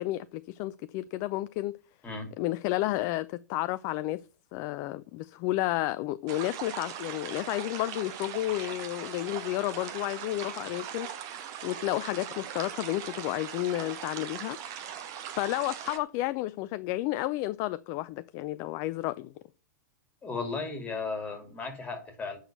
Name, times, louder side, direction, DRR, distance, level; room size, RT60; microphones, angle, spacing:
voice 1, 0.0-1.8 2.4-4.2 4.5-11.3 11.6-14.6 15.4-19.3, left 16 dB, 35° left, 0.4 m, -31 dB
sound 1, 6.3-16.0, right 9 dB, 35° right, 1.4 m, -40 dB
voice 2, 20.2-22.4, left 4 dB, 15° left, 2.9 m, -35 dB
7.8 x 6.4 x 7.8 m
figure-of-eight pair, 100°, 10 cm